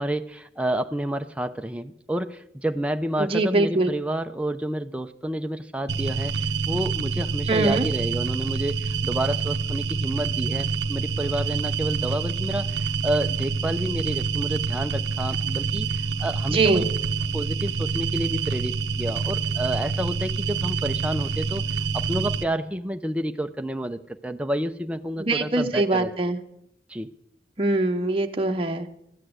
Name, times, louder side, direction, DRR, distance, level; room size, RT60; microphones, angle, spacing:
voice 1, 0.0-16.8 17.3-21.6 21.9-26.1 26.9-27.1, right 1 dB, 5° right, 6 dB, 0.5 m, -29 dB
voice 2, 3.2-3.9 7.5-7.9 16.5-16.9 25.2-26.4 27.6-28.9, right 2 dB, 30° right, 3 dB, 0.9 m, -23 dB
sound 1, 5.9-22.4, right 5 dB, 75° right, 0.7 m, -27 dB
13.5 x 8.3 x 7.9 m, 0.77 s
head